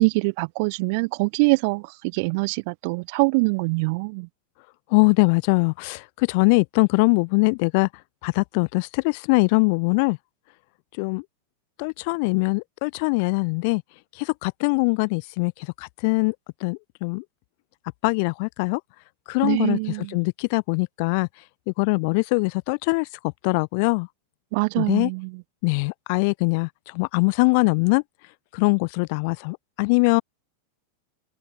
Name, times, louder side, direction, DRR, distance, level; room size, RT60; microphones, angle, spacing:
voice 1, 0.0-4.3 19.4-20.2 24.5-25.4, right 30 dB, 45° right, 3.6 m, -24 dB
voice 2, 4.9-7.9 8.2-10.2 11.0-11.2 11.8-13.8 14.2-15.5 15.8-16.3 16.6-17.2 18.0-18.8 19.3-19.8 20.1-21.3 21.8-23.1 23.4-24.1 24.8-25.1 25.6-28.0 28.5-30.2, left 31 dB, 45° left, 0.7 m, -22 dB
figure-of-eight pair, 90°, 0 cm